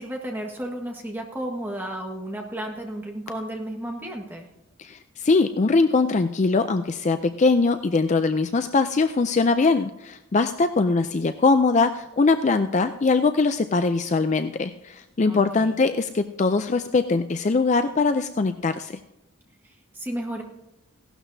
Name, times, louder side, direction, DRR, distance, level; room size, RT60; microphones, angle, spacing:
voice 1, 0.0-4.5 15.2-15.8 19.6-20.4, right 1 dB, 10° right, 1 dB, 1.5 m, -33 dB
voice 2, 4.8-19.0, left 3 dB, 30° left, 9 dB, 0.4 m, -22 dB
16.0 x 12.0 x 2.7 m, 0.95 s
head